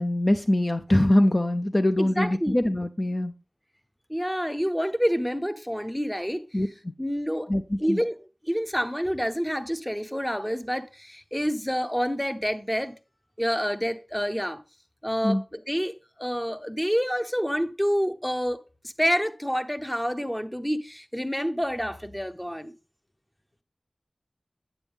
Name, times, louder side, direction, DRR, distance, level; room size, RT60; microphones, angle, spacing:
voice 1, 0.0-3.3 6.5-6.7 7.5-8.0 15.2-15.4, left 1 dB, 35° left, 0.5 m, -23 dB
voice 2, 2.0-2.6 4.1-6.4 7.0-7.5 7.8-8.2 8.4-12.9 13.4-14.6 15.0-15.9 16.2-22.7, equal, 5° left, 0.9 m, -28 dB
9.1 x 7.9 x 3.5 m
wide cardioid pair, 50°, 0 cm